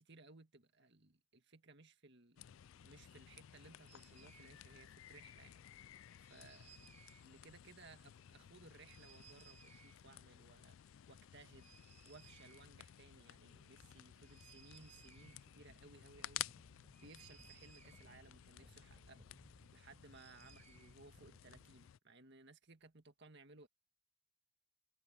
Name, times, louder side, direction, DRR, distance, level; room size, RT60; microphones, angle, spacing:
voice 1, 0.0-2.6 2.8-6.0 6.3-6.9 7.2-11.7 12.1-16.7 17.0-19.3 19.7-23.7, right 3 dB, 55° right, 1.8 m, -62 dB
sound 1, 2.4-22.0, left 12 dB, 65° left, 0.3 m, -55 dB
sound 2, 3.9-4.5 6.1-7.2 8.8-10.0 11.6-12.9 13.2-13.3 13.4-21.7, right 4 dB, 35° right, 5.3 m, -64 dB
head